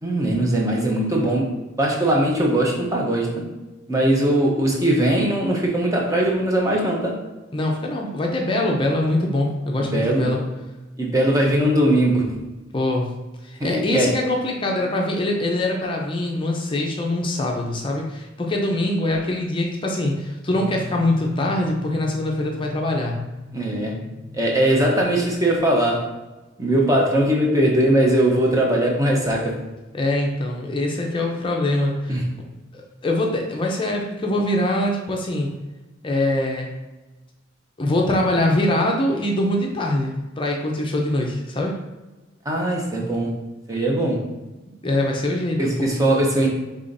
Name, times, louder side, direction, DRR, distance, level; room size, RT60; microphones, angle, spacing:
voice 1, 0.0-1.5 1.8-3.4 3.9-7.2 9.8-10.3 11.0-12.4 13.6-14.1 23.5-24.0 24.3-26.1 26.6-29.6 32.1-32.2 42.5-43.4 43.7-44.2 45.6-46.5, right 1 dB, 15° right, -1 dB, 0.7 m, -20 dB
voice 2, 7.5-10.4 12.7-13.1 13.4-23.2 29.9-32.2 32.7-35.5 36.0-36.7 37.8-41.8 44.8-45.9, left 1 dB, 25° left, 0 dB, 0.5 m, -23 dB
sound 1, 20.5-25.6, left 3 dB, 35° right, 1.5 m, -38 dB
5.5 x 3.3 x 2.6 m, 1.1 s
head